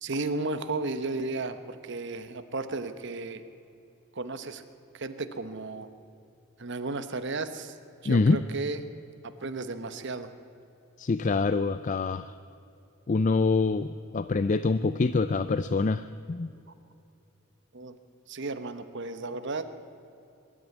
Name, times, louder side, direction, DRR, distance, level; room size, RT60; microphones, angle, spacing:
voice 1, 0.0-3.4 4.1-4.6 4.9-5.9 6.6-7.7 8.0-8.8 9.4-10.3 17.7-18.0 18.3-19.7, right 3 dB, 60° right, 10 dB, 1.1 m, -34 dB
voice 2, 8.1-8.4 11.0-12.3 13.1-16.5, left 3 dB, 35° left, 13 dB, 0.4 m, -25 dB
23.0 x 12.5 x 9.5 m, 2.7 s
head